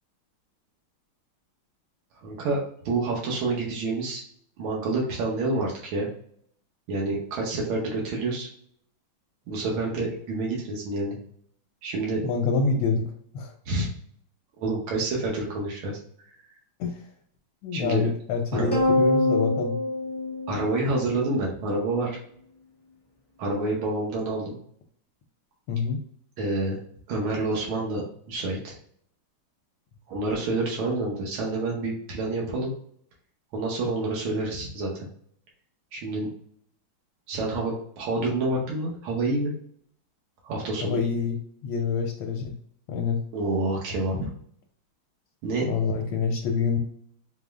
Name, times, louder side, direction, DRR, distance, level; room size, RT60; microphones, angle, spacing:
voice 1, 2.2-4.2 4.6-6.1 6.9-8.5 9.5-11.2 11.8-12.2 13.7-13.9 14.6-16.0 17.7-18.0 18.5-18.7 20.5-22.2 23.4-24.5 26.4-26.8 27.1-28.8 30.1-32.7 33.5-35.1 35.9-36.3 37.3-39.5 40.4-41.0 43.3-44.3 45.4-45.8, right 2 dB, 80° right, -3 dB, 1.8 m, -28 dB
voice 2, 12.2-13.1 13.3-13.5 16.8-17.0 17.6-19.8 25.7-26.0 40.8-42.5 42.9-43.2 45.6-46.8, left 5 dB, 75° left, 1 dB, 1.4 m, -26 dB
sound 1, 18.7-21.3, left 2 dB, 35° left, 0.4 m, -24 dB
5.3 x 2.0 x 3.5 m, 0.63 s
omnidirectional pair, 2.3 m